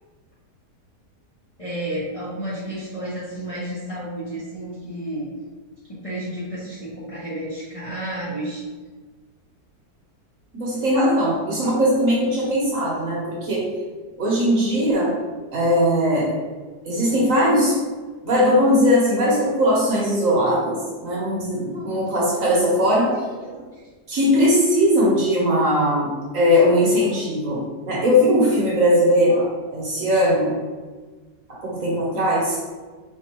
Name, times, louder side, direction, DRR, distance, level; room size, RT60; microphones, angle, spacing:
voice 1, 1.6-5.3 5.8-8.6 21.6-22.5 22.8-23.9 25.5-25.9 27.0-27.2 29.3-29.4, right 1 dB, 25° left, -10 dB, 0.9 m, -32 dB
voice 2, 10.5-13.7 14.2-15.1 15.5-16.3 16.8-17.8 18.2-23.1 24.1-26.1 26.3-27.6 27.9-29.5 29.7-30.5 31.6-32.6, equal, 55° right, -5 dB, 1.3 m, -19 dB
4.5 x 2.8 x 2.9 m, 1.4 s
omnidirectional pair, 1.8 m